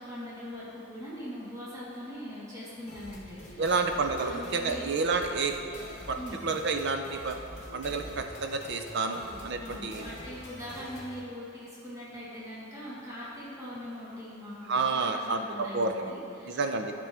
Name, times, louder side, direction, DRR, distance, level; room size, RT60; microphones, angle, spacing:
voice 1, 0.0-3.8 4.2-4.8 6.1-6.4 9.1-16.7, equal, 15° right, -8 dB, 1.5 m, -41 dB
sound 1, 2.9-11.2, left 1 dB, 35° left, 1.2 m, -45 dB
voice 2, 3.6-5.6 6.1-6.2 6.4-7.4 7.7-10.1 14.7-16.1 16.5-16.9, right 4 dB, 55° right, 5 dB, 0.5 m, -29 dB
12.0 x 5.2 x 3.5 m, 2.6 s
head